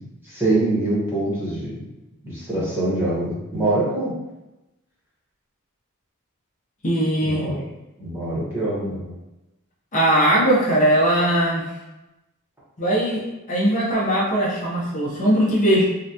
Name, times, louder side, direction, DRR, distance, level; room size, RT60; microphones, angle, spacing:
voice 1, 0.2-1.8 2.2-4.1 7.2-7.6 8.0-9.1, right 2 dB, 10° right, -7 dB, 1.0 m, -24 dB
voice 2, 6.8-7.4 9.9-11.7 12.8-15.9, right 1 dB, 35° left, -5 dB, 0.7 m, -20 dB
3.8 x 2.1 x 2.8 m, 1.0 s
head